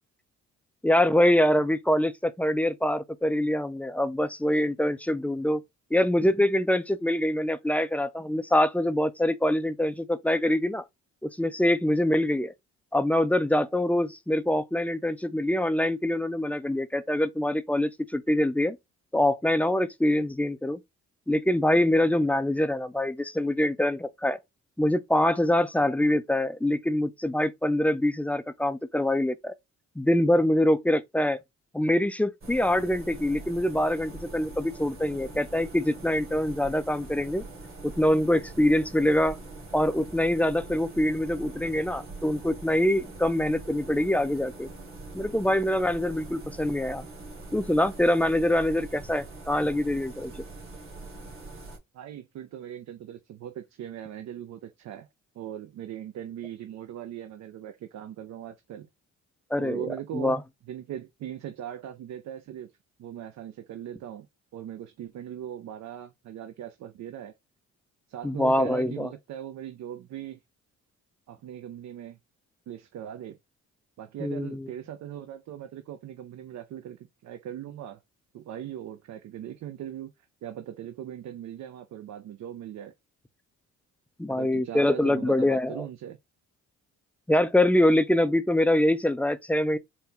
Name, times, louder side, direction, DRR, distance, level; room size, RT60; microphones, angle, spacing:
voice 1, 0.8-5.6 5.9-10.8 11.2-12.5 12.9-18.8 19.1-20.8 21.3-24.4 24.8-29.5 30.0-31.4 31.7-37.4 37.8-39.4 39.7-44.7 45.1-47.0 47.5-50.4 59.5-59.8 60.1-60.4 68.2-69.1 74.2-74.7 84.2-85.8 87.3-89.8, left 1 dB, 5° left, 0.4 m, -24 dB
sound 1, 32.4-51.8, right 2 dB, 45° right, 2.0 m, -43 dB
voice 2, 51.9-55.1 55.3-58.9 59.6-60.4 60.7-62.7 63.0-64.3 64.5-67.3 68.1-70.4 71.3-72.2 72.7-73.4 74.0-78.0 78.3-80.1 80.4-82.9 84.3-86.2, right 10 dB, 65° right, 0.6 m, -39 dB
4.2 x 2.2 x 3.8 m
cardioid pair, 90°, 30 cm